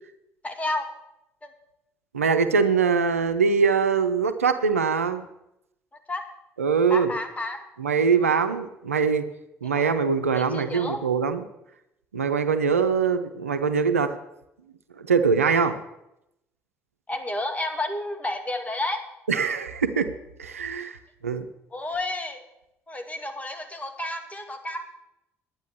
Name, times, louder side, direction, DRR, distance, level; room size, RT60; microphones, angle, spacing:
voice 1, 0.4-0.9 1.4-1.5 6.1-6.2 6.9-7.6 9.6-9.9 10.3-11.0 17.1-19.0 21.7-22.4 22.9-24.9, left 2 dB, 20° left, 6 dB, 2.2 m, -31 dB
voice 2, 2.1-5.3 6.6-7.1 7.8-9.2 9.6-11.5 12.1-14.2 15.1-15.8 19.3-20.1 20.4-21.0 21.2-21.5, right 5 dB, 90° right, 10 dB, 0.6 m, -23 dB
10.5 x 9.6 x 6.9 m, 0.85 s
figure-of-eight pair, 50°, 7 cm